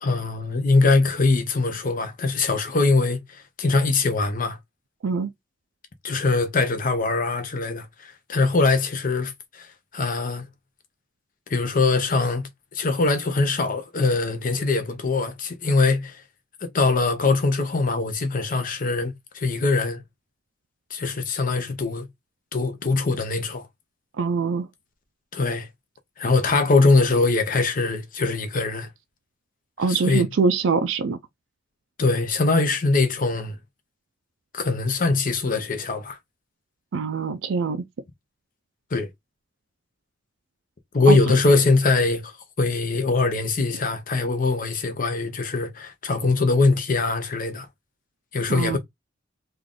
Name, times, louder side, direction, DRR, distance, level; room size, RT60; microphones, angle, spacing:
voice 1, 0.0-4.6 6.0-10.5 11.5-16.2 16.6-20.0 20.9-22.1 22.5-23.7 25.3-25.7 26.2-28.9 29.9-30.3 32.0-33.6 34.5-36.2 38.9-39.1 40.9-47.7 48.3-48.8, left 3 dB, 45° left, 0.8 m, -22 dB
voice 2, 24.2-24.7 29.8-31.2 36.9-37.8 41.1-41.2 48.5-48.8, right 4 dB, 80° right, 0.4 m, -23 dB
3.2 x 2.5 x 3.7 m
head